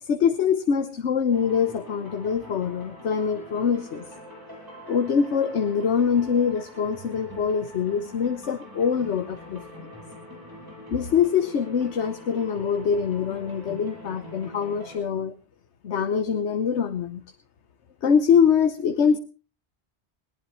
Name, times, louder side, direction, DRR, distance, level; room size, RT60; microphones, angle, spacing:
voice 1, 0.0-4.0 4.9-9.9 10.9-15.3 15.8-17.2 18.0-19.2, left 7 dB, 80° left, 9 dB, 1.3 m, -24 dB
sound 1, 1.3-15.0, equal, 20° right, 7.9 m, -44 dB
21.5 x 18.0 x 3.1 m, 0.35 s
omnidirectional pair, 1.1 m